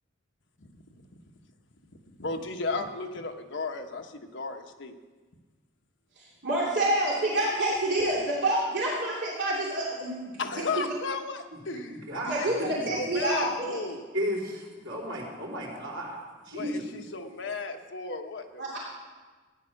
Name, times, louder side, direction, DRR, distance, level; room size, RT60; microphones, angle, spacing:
voice 1, 0.6-1.1 2.1-4.9 10.4-14.1 16.5-18.8, left 3 dB, 70° left, 4 dB, 1.2 m, -35 dB
voice 2, 6.2-10.3 10.7-10.8 12.3-13.8 18.6-18.8, right 1 dB, 60° right, -6 dB, 3.0 m, -28 dB
voice 3, 11.9-12.9 14.1-16.2 16.4-16.8, equal, 85° right, -4 dB, 4.1 m, -34 dB
14.5 x 10.0 x 6.5 m, 1.3 s
head